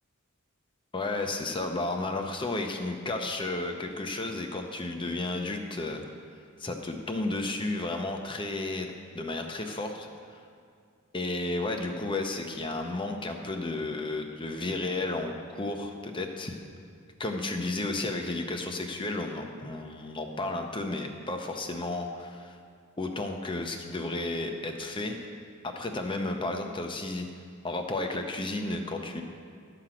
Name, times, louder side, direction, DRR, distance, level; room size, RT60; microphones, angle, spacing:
voice 1, 0.9-6.0 6.6-10.4 11.1-16.6 17.2-22.6 23.0-25.2 25.6-27.3 27.6-29.2, left 2 dB, 25° left, 4 dB, 0.7 m, -33 dB
12.0 x 5.9 x 5.0 m, 2.3 s
head